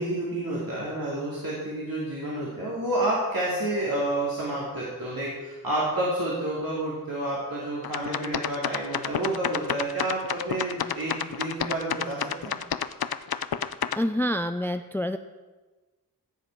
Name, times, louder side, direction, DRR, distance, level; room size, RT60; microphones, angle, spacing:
voice 1, 0.0-12.6, right 1 dB, 70° right, -6 dB, 2.5 m, -29 dB
sound 1, 7.8-14.0, left 8 dB, 80° left, 0.5 m, -29 dB
voice 2, 14.0-15.2, equal, 5° left, 9 dB, 0.4 m, -27 dB
16.0 x 7.5 x 4.6 m, 1.2 s
wide cardioid pair, 55°, 36 cm